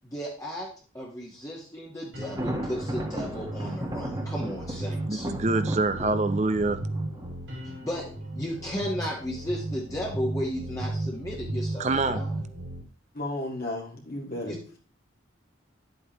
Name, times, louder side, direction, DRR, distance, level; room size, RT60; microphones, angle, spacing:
voice 1, 0.0-0.7 0.9-5.3 7.6-8.0 8.3-12.3 14.5-14.6, equal, 15° left, -4 dB, 1.4 m, -34 dB
sound 1, 2.1-12.8, right 1 dB, 65° right, 3.2 m, -35 dB
Thunder, 2.2-8.0, right 1 dB, 20° right, 1.3 m, -36 dB
voice 2, 5.1-6.8 11.8-12.2, right 3 dB, 35° right, 11 dB, 0.6 m, -26 dB
voice 3, 13.1-14.5, left 1 dB, 50° left, 0 dB, 1.9 m, -33 dB
11.0 x 7.9 x 3.0 m, 0.40 s
head